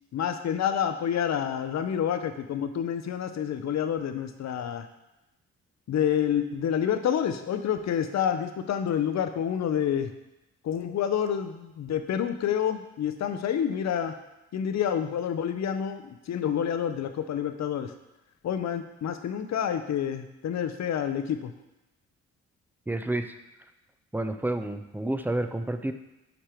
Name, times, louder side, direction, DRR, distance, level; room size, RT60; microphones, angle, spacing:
voice 1, 0.1-4.9 5.9-10.1 10.6-14.2 14.5-17.9 18.4-21.5, left 9 dB, 65° left, 8 dB, 0.7 m, -28 dB
voice 2, 22.9-23.3 24.1-25.9, right 1 dB, 5° right, 8 dB, 0.6 m, -29 dB
9.0 x 3.4 x 4.5 m, 0.95 s
cardioid pair, 65°, 30 cm